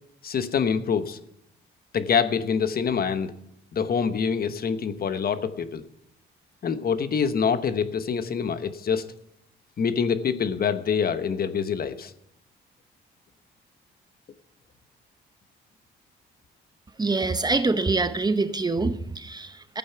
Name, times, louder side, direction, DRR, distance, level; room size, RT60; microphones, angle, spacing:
voice 1, 0.2-1.2 1.9-3.3 3.7-5.8 6.6-9.1 9.8-12.1, left 6 dB, 50° left, 1.1 m, -25 dB
voice 2, 17.0-19.8, right 3 dB, 20° right, 0.8 m, -25 dB
13.5 x 9.3 x 5.9 m
cardioid pair, 90°, 20 cm